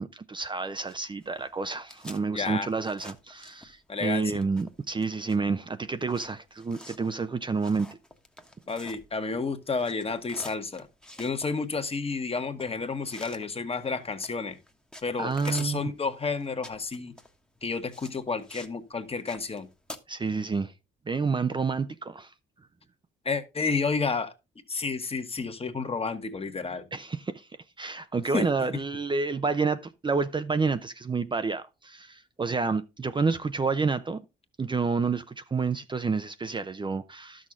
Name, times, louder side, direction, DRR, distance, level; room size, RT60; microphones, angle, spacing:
voice 1, 0.0-7.9 15.2-15.9 20.1-20.7 21.1-22.3 26.9-27.5 27.8-34.2 34.6-37.5, right 4 dB, 25° right, 0.6 m, -29 dB
sound 1, 0.6-4.0 4.2-9.4 9.6-18.8 19.1-20.0, left 1 dB, 5° left, 1.2 m, -48 dB
voice 2, 2.3-2.7 3.9-4.4 8.7-10.9 11.2-14.6 15.0-17.1 17.6-19.7 23.2-24.3 24.7-26.9 28.3-28.5 28.7-28.8, left 4 dB, 30° left, 1.3 m, -31 dB
12.0 x 6.4 x 3.7 m
cardioid pair, 90°, 20 cm